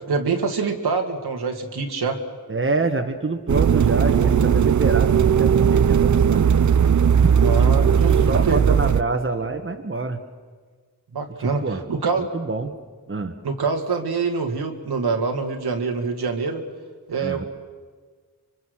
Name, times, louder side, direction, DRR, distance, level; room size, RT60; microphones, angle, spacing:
voice 1, 0.0-2.2 7.4-8.8 11.1-12.3 13.4-16.6 17.1-17.4, right 4 dB, 75° right, 4 dB, 2.2 m, -25 dB
voice 2, 2.5-6.4 7.2-7.3 7.7-7.9 8.3-10.2 11.4-11.8 12.3-12.7 13.1-13.3 17.2-17.4, right 3 dB, 30° right, 5 dB, 1.7 m, -26 dB
sound 1, 3.5-9.0, right 7 dB, 50° right, 0.7 m, -17 dB
25.5 x 23.5 x 6.5 m, 1.5 s
cardioid pair, 50°, 38 cm